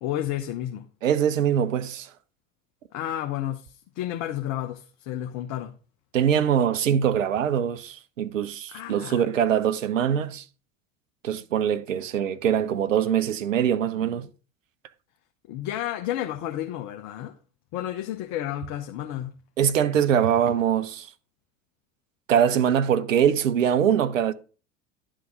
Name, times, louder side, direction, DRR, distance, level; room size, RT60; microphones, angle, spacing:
voice 1, 0.0-0.8 2.9-5.8 8.7-9.3 15.5-17.3 17.7-19.4, left 12 dB, 45° left, 0.9 m, -31 dB
voice 2, 1.0-2.1 6.1-10.4 11.2-14.3 19.6-21.1 22.3-24.3, right 9 dB, 80° right, 0.7 m, -23 dB
11.0 x 3.7 x 4.8 m
figure-of-eight pair, 80°, 38 cm